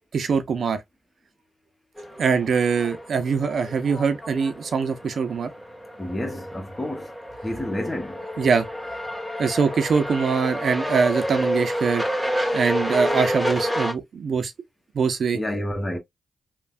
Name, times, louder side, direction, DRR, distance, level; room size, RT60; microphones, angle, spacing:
voice 1, 0.1-0.8 2.2-5.5 8.4-8.7 9.4-12.0 12.5-14.5 14.9-15.4, right 5 dB, 70° right, 0.5 m, -23 dB
sound 1, 2.0-13.9, equal, ahead, 1.5 m, -29 dB
voice 2, 6.0-7.1 7.4-8.3 15.3-16.0, left 1 dB, 25° left, 1.1 m, -29 dB
3.2 x 2.2 x 2.4 m
supercardioid pair, 40°, 0 cm